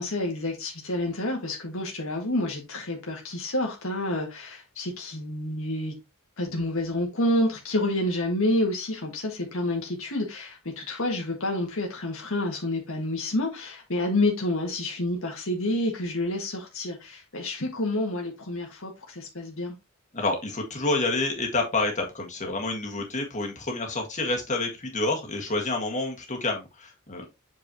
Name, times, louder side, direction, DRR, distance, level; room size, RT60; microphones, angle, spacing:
voice 1, 0.0-5.9 6.4-19.7, left 1 dB, 65° left, 1.8 m, -29 dB
voice 2, 20.1-27.2, left 2 dB, 35° left, 1.8 m, -28 dB
7.8 x 4.7 x 3.0 m
head